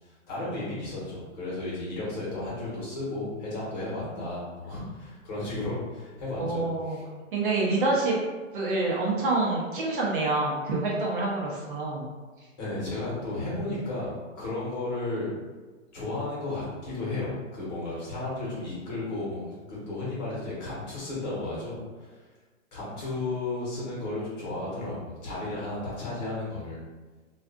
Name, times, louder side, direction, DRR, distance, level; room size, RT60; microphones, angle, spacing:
voice 1, 0.0-7.0 12.6-15.3 15.9-19.4 19.7-22.2 22.7-26.8, left 2 dB, 35° left, -6 dB, 1.1 m, -34 dB
voice 2, 6.4-7.0 7.3-8.2 8.5-12.1, right 2 dB, 45° right, -4 dB, 0.7 m, -27 dB
2.4 x 2.4 x 2.4 m, 1.3 s
hypercardioid pair, 155°, 38 cm